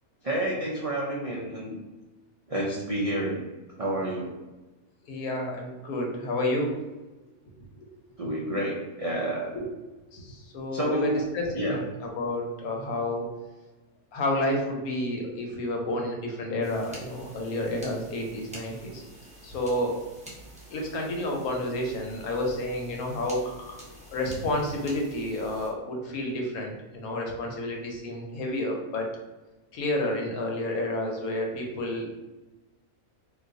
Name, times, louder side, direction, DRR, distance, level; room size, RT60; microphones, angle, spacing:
voice 1, 0.2-1.8 2.5-3.4 3.8-4.3 8.2-9.5 10.7-11.2 11.5-11.8, right 1 dB, 70° right, -4 dB, 0.3 m, -29 dB
voice 2, 5.0-6.8 9.5-9.7 10.1-13.3 14.1-19.0 19.4-20.0 20.7-23.8 24.1-29.1 29.7-32.1, left 1 dB, 90° left, 1 dB, 1.2 m, -30 dB
sound 1, 16.6-25.7, equal, 5° right, 0.5 m, -47 dB
4.0 x 2.5 x 2.5 m, 1.1 s
omnidirectional pair, 1.5 m